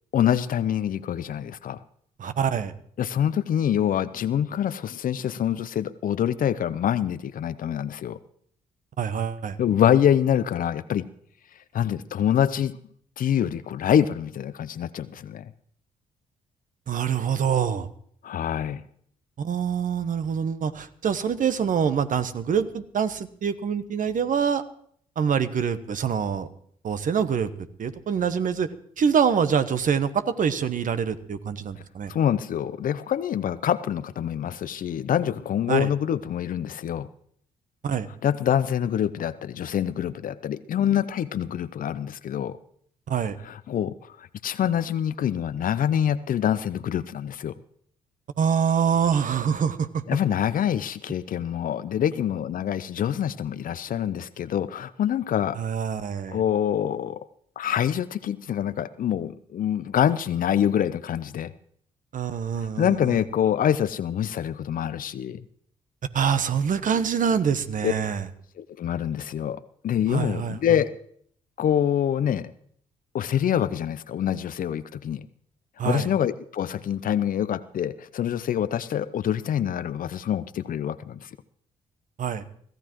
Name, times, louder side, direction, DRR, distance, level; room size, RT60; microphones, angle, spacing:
voice 1, 0.1-1.8 3.0-8.2 9.6-11.0 11.7-12.8 13.2-15.5 18.2-18.8 32.1-37.1 38.2-42.6 43.4-47.5 50.1-55.6 56.3-57.3 57.6-61.5 62.8-65.4 67.8-67.9 68.6-70.9 71.6-72.5 73.1-75.3 75.8-81.3, left 9 dB, 55° left, 15 dB, 0.7 m, -25 dB
voice 2, 2.2-2.7 9.0-9.6 16.9-17.9 19.4-24.6 25.2-26.5 26.8-27.5 27.8-28.7 29.0-32.1 35.7-35.9 37.8-38.1 43.1-43.4 48.4-50.0 55.6-56.4 62.1-63.2 66.1-68.2 70.1-70.6 75.8-76.1 82.2-82.4, right 7 dB, 50° right, 11 dB, 1.1 m, -25 dB
23.5 x 15.5 x 3.1 m, 0.63 s
hypercardioid pair, 45°, 17 cm